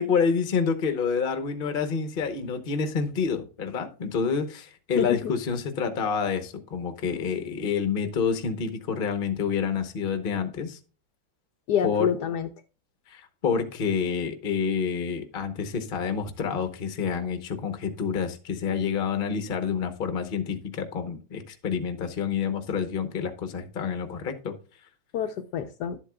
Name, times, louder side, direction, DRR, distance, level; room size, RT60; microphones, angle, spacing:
voice 1, 0.0-10.8 11.8-12.1 13.1-24.5, left 6 dB, 35° left, 8 dB, 0.9 m, -28 dB
voice 2, 4.9-5.3 11.7-12.5 25.1-26.0, left 8 dB, 70° left, 7 dB, 1.1 m, -27 dB
11.5 x 8.0 x 2.3 m, 0.35 s
omnidirectional pair, 2.0 m